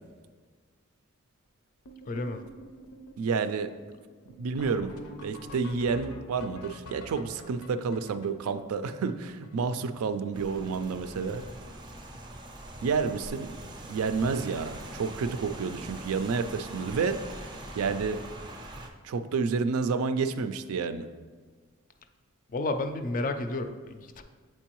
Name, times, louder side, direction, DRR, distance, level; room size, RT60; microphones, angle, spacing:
sound 1, 1.8-10.1 10.3-10.4 10.6-10.9 11.2-11.7 12.0-12.3 13.1-13.2 13.6-13.7 14.0-14.1 16.4-16.5 18.8-18.9, left 1 dB, 85° left, 0.6 m, -48 dB
voice 1, 2.1-2.4 22.5-24.2, left 2 dB, 40° left, 8 dB, 0.4 m, -31 dB
voice 2, 3.2-3.7 4.4-4.9 5.2-11.4 12.8-13.5 13.9-17.2 17.8-18.2 19.0-21.1, right 5 dB, 85° right, 10 dB, 0.4 m, -29 dB
Rain, 10.3-18.9, right 1 dB, 20° right, 0.4 m, -43 dB
7.4 x 4.5 x 3.0 m, 1.5 s
head